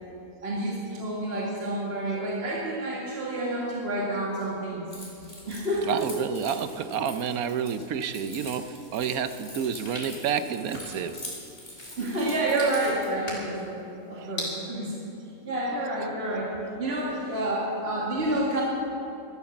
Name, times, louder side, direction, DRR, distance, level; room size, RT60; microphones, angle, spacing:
voice 1, 0.4-4.9 5.5-5.9 12.0-13.6 14.1-15.0 15.4-16.5 16.8-18.6, right 1 dB, 45° right, -4 dB, 2.3 m, -29 dB
Keys jangling, 4.9-13.1, left 1 dB, 30° left, 3.7 m, -44 dB
voice 2, 5.9-8.6 8.9-11.1, right 7 dB, 85° right, 11 dB, 1.2 m, -29 dB
sound 1, 9.3-14.5, left 1 dB, 75° left, 4.6 m, -42 dB
13.0 x 13.0 x 7.1 m, 2.8 s
omnidirectional pair, 1.5 m